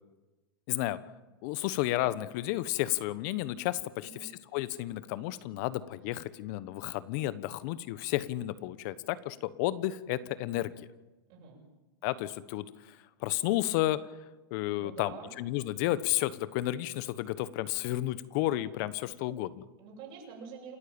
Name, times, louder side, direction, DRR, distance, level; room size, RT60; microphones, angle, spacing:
voice 1, 0.7-1.0 1.4-10.9 12.0-14.0 14.5-19.7, left 15 dB, 55° left, 16 dB, 1.2 m, -32 dB
voice 2, 11.3-11.6 14.8-15.3 19.8-20.8, right 6 dB, 45° right, -2 dB, 7.9 m, -47 dB
28.0 x 13.0 x 8.8 m, 1.1 s
hypercardioid pair, 120°, 12 cm